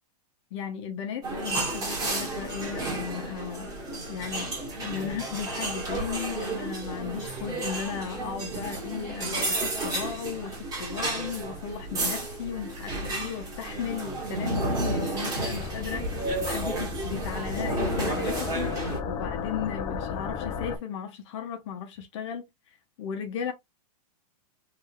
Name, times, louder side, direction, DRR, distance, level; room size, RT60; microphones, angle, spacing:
voice 1, 0.5-23.5, left 8 dB, 45° left, 0.8 m, -36 dB
sound 1, 1.2-19.0, right 2 dB, 15° right, 1.8 m, -32 dB
sound 2, 15.5-20.8, left 6 dB, 20° left, 0.4 m, -34 dB
3.5 x 2.7 x 3.1 m
supercardioid pair, 160°, 20 cm